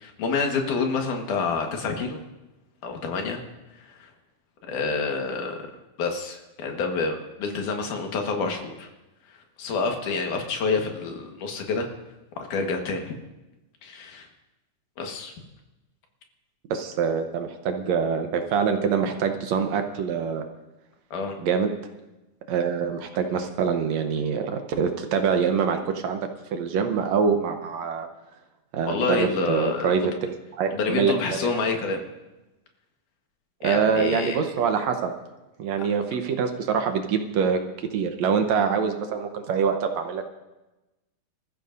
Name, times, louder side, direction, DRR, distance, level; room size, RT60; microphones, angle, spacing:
voice 1, 0.0-2.2 2.8-3.4 4.0-4.1 4.7-5.7 6.0-8.9 9.6-11.9 12.4-13.2 13.8-14.3 15.0-15.3 21.1-21.3 28.9-30.1 30.7-32.0 33.6-34.4 35.8-35.9, left 4 dB, 80° left, 3 dB, 3.0 m, -28 dB
voice 2, 16.7-20.4 21.4-21.7 22.5-28.1 28.7-31.5 33.6-35.1 35.6-37.6 37.9-40.2, right 6 dB, 70° right, 6 dB, 2.0 m, -25 dB
25.5 x 14.0 x 2.6 m, 1.0 s
omnidirectional pair, 3.5 m